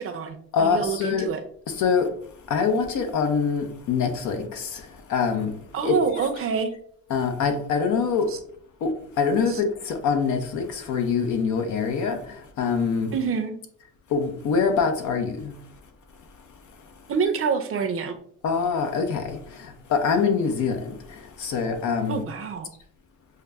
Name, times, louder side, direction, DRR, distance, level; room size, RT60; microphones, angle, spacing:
voice 1, 0.0-1.4 5.7-6.7 8.3-8.4 9.5-9.6 13.1-13.6 17.1-18.2 22.1-22.7, right 5 dB, 45° right, 0.6 m, -27 dB
voice 2, 0.5-1.3 1.8-2.1 2.5-4.8 5.1-5.5 5.8-6.0 7.1-8.3 8.8-8.9 9.2-12.2 12.6-13.1 14.1-15.5 18.4-19.4 19.9-20.9 21.4-22.2, left 5 dB, 75° left, 0.7 m, -24 dB
6.4 x 2.2 x 2.2 m
cardioid pair, 90°, 30 cm